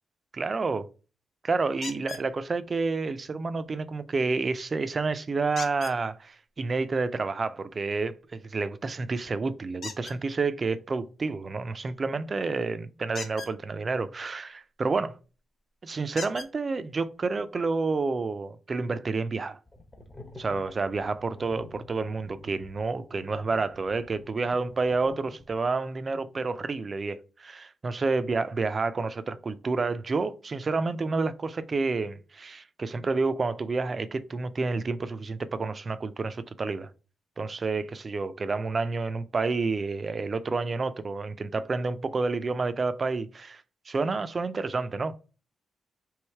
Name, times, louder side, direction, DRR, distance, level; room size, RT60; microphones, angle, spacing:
voice 1, 0.3-0.8 1.4-15.2 15.8-19.6 20.4-36.9 37.4-45.3, right 4 dB, 35° right, 0.3 m, -29 dB
sound 1, 1.8-2.3 5.6-6.0 9.8-10.2 13.1-13.5 15.2-15.3 16.2-16.5 17.5-17.6 18.1-18.2, left 4 dB, 55° left, 0.9 m, -39 dB
sound 2, 19.7-25.7, left 2 dB, 20° left, 0.8 m, -49 dB
3.2 x 3.0 x 4.4 m
wide cardioid pair, 135°, 0 cm